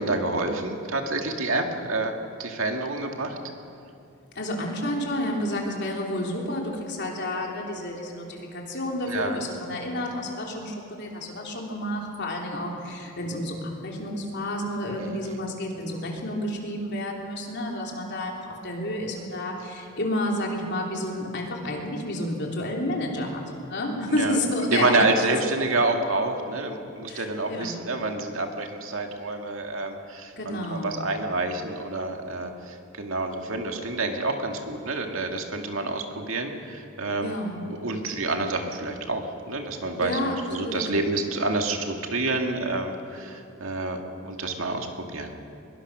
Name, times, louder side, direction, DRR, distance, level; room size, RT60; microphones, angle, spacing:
voice 1, 0.0-2.1 2.4-3.4 9.1-9.4 24.2-24.4 24.7-37.4 37.7-40.2 40.5-45.3, right 2 dB, 65° right, 3 dB, 2.1 m, -28 dB
voice 2, 4.3-25.5 27.1-27.7 30.4-31.0 37.2-37.6 40.0-40.8, left 1 dB, 55° left, 0 dB, 3.4 m, -30 dB
23.0 x 22.0 x 6.2 m, 2.6 s
head